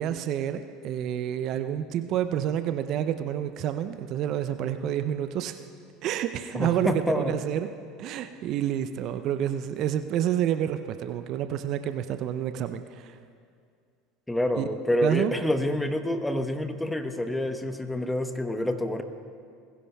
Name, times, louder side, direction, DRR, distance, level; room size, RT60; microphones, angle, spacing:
voice 1, 0.0-5.5 6.0-7.7 8.0-13.2 14.6-14.7 15.0-15.3, right 10 dB, 50° right, 10 dB, 0.5 m, -29 dB
voice 2, 6.5-7.4 14.3-19.0, left 1 dB, 5° left, 8 dB, 1.0 m, -27 dB
20.5 x 16.5 x 2.3 m, 2.3 s
hypercardioid pair, 75°, 0 cm